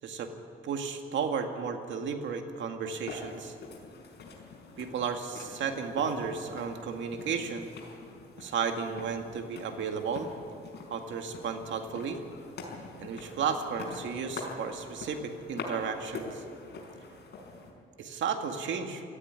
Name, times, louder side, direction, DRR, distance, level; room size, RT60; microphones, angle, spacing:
voice 1, 0.6-3.5 4.8-7.7 8.4-10.3 10.9-12.2 13.0-16.4 18.0-19.0, right 6 dB, 70° right, 5 dB, 2.0 m, -33 dB
sound 1, 3.0-17.7, left 3 dB, 55° left, 5.5 m, -44 dB
18.5 x 14.5 x 9.6 m, 2.5 s
cardioid pair, 90°, 20 cm